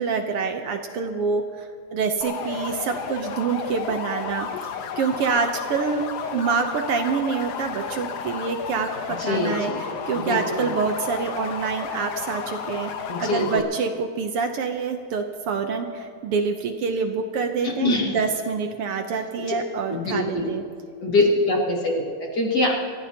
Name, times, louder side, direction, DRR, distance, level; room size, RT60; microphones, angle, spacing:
voice 1, 0.0-4.5 5.0-6.0 6.3-12.9 13.2-20.6, right 5 dB, 70° right, 5 dB, 1.4 m, -26 dB
sound 1, 2.2-13.6, left 7 dB, 80° left, 2.4 m, -32 dB
voice 2, 9.2-9.8 10.1-10.7 13.1-13.6 17.6-18.1 19.9-20.5 21.0-22.7, left 2 dB, 35° left, -2 dB, 2.5 m, -24 dB
28.5 x 15.0 x 2.9 m, 2.1 s
omnidirectional pair, 3.5 m